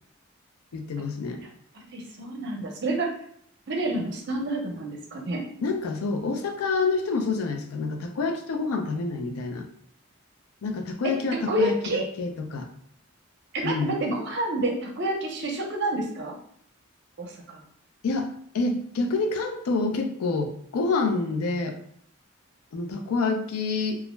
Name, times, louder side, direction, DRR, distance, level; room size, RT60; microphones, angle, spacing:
voice 1, 0.7-1.4 5.6-9.7 10.6-12.7 13.6-13.9 18.0-21.8 22.7-24.0, left 3 dB, 85° left, 5 dB, 0.4 m, -27 dB
voice 2, 1.7-3.1 3.7-5.5 11.3-12.0 13.5-16.3 17.2-17.6, right 1 dB, 50° right, 0 dB, 0.5 m, -28 dB
2.3 x 2.1 x 3.0 m, 0.65 s
head